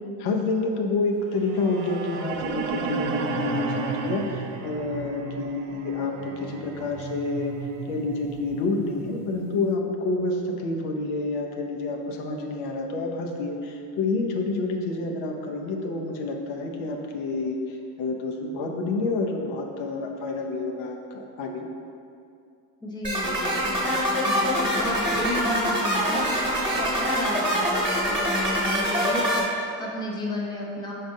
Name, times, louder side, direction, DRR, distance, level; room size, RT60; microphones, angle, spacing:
voice 1, 0.2-7.5 7.9-21.7, left 3 dB, 80° left, 1 dB, 0.7 m, -28 dB
sound 1, 1.4-9.5, right 6 dB, 70° right, 0.5 m, -34 dB
voice 2, 22.8-30.9, left 1 dB, 10° left, -3 dB, 0.6 m, -33 dB
sound 2, 23.0-29.4, equal, 10° right, 1.3 m, -24 dB
5.0 x 3.8 x 2.6 m, 2.5 s
supercardioid pair, 105°, 43 cm